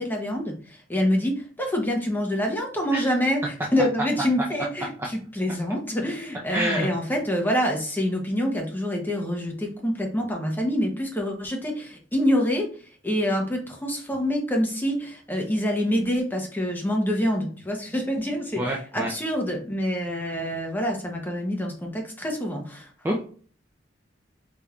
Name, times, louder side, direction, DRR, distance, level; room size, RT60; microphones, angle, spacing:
voice 1, 0.0-12.7 13.0-22.9, equal, 10° left, 1 dB, 0.8 m, -26 dB
voice 2, 6.5-6.9 18.6-19.1 23.0-23.2, equal, 15° right, -1 dB, 0.4 m, -27 dB
4.1 x 3.5 x 2.4 m, 0.43 s
head